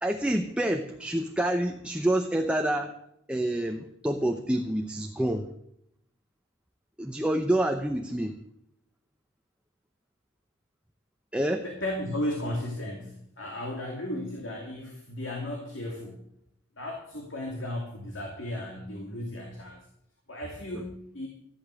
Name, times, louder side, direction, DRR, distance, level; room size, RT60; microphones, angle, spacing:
voice 1, 0.0-2.9 3.3-5.5 7.0-8.3 11.3-11.6 20.7-20.8, right 1 dB, 5° right, 4 dB, 0.8 m, -27 dB
voice 2, 11.6-16.2 16.8-19.9 20.3-21.3, left 1 dB, 70° left, 1 dB, 2.7 m, -35 dB
14.0 x 11.0 x 6.4 m, 0.74 s
head